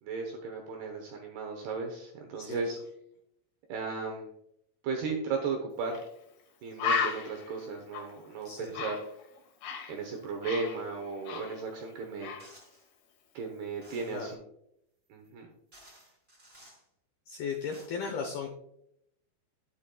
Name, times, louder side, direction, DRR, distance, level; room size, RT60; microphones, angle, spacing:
voice 1, 0.0-2.8 3.7-4.3 4.8-6.0 6.6-9.0 9.9-12.4 13.3-14.4 15.1-15.5, right 4 dB, 75° right, 2 dB, 2.4 m, -35 dB
Bird, 5.9-6.1 6.4-6.5 6.8-10.0 10.2-11.9 12.2-12.5, left 6 dB, 65° left, 3.0 m, -34 dB
sound 1, 12.4-12.9 13.8-14.3 15.2-15.3 15.7-16.8 17.5-17.9, right 1 dB, 15° right, 2.9 m, -56 dB
voice 2, 17.3-18.5, left 6 dB, 85° left, 3 dB, 2.1 m, -36 dB
12.0 x 8.3 x 2.3 m, 0.75 s
omnidirectional pair, 5.9 m